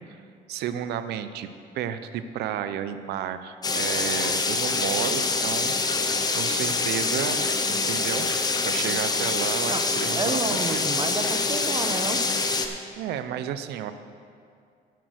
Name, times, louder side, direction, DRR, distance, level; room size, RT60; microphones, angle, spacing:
voice 1, 0.5-1.5 1.7-6.0 6.4-8.3 8.6-10.2 10.5-10.9 13.0-13.9, right 9 dB, 75° right, 11 dB, 0.6 m, -32 dB
sound 1, 3.6-12.7, left 3 dB, 25° left, 0.8 m, -25 dB
voice 2, 10.2-12.2, right 3 dB, 25° right, 7 dB, 0.9 m, -30 dB
9.3 x 7.8 x 6.4 m, 2.3 s
cardioid pair, 110°, 17 cm